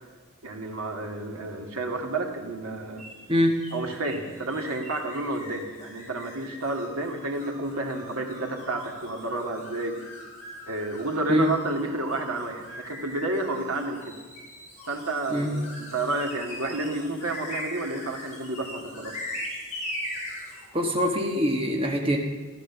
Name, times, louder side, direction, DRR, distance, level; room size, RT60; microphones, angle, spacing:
voice 1, 0.4-3.0 3.7-10.0 10.7-14.1 14.9-19.2, right 2 dB, 80° right, 2 dB, 2.4 m, -30 dB
sound 1, 3.0-20.7, left 1 dB, 30° left, 6.3 m, -41 dB
voice 2, 20.7-22.2, equal, 25° right, 1 dB, 1.4 m, -23 dB
15.0 x 13.0 x 7.1 m, 1.2 s
head